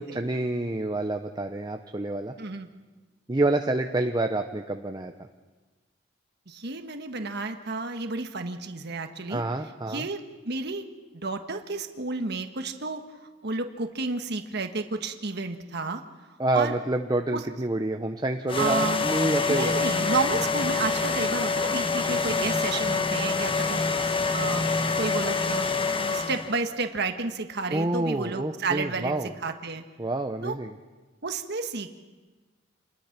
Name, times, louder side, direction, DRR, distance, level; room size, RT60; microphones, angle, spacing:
voice 1, 0.0-2.3 3.3-5.1 9.3-10.1 16.4-19.8 27.7-29.3 30.0-30.8, right 2 dB, 20° right, 5 dB, 0.8 m, -28 dB
voice 2, 2.4-2.7 6.5-9.4 9.9-10.8 11.1-13.0 13.4-16.0 16.5-16.8 17.3-17.4 18.6-19.1 19.5-24.7 25.0-25.7 26.0-29.8 30.4-30.5 31.2-31.9, right 3 dB, 55° right, 6 dB, 1.4 m, -31 dB
sound 1, 18.5-26.6, left 4 dB, 25° left, 1.0 m, -26 dB
28.5 x 21.0 x 6.0 m, 1.3 s
head